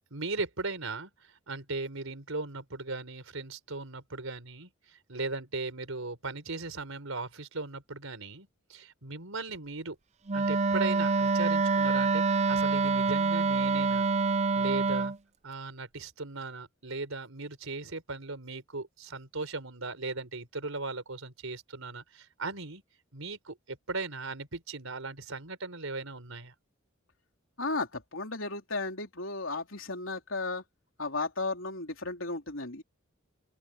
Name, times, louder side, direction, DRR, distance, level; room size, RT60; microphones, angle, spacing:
voice 1, 0.1-10.0 10.3-14.1 14.5-15.1 15.4-22.8 23.1-26.5, right 3 dB, 85° right, 4.2 m, -38 dB
Wind instrument woodwind instrument, 10.3-15.2, right 4 dB, 35° right, 0.6 m, -26 dB
voice 2, 27.6-30.6 31.0-32.8, left 3 dB, 70° left, 3.9 m, -34 dB
open air
head